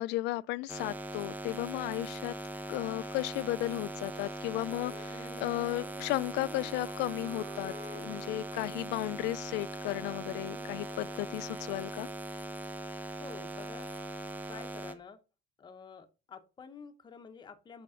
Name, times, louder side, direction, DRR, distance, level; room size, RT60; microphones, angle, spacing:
voice 1, 0.0-2.3 2.7-12.1, left 19 dB, 90° left, 0.4 m, -34 dB
sound 1, 0.7-14.9, right 2 dB, 10° right, 0.7 m, -41 dB
Wind instrument woodwind instrument, 4.7-11.2, right 1 dB, 45° right, 3.0 m, -52 dB
voice 2, 13.2-13.9 14.5-15.2 15.6-17.8, left 6 dB, 25° left, 0.9 m, -49 dB
6.1 x 5.9 x 5.7 m
cardioid pair, 160°, 17 cm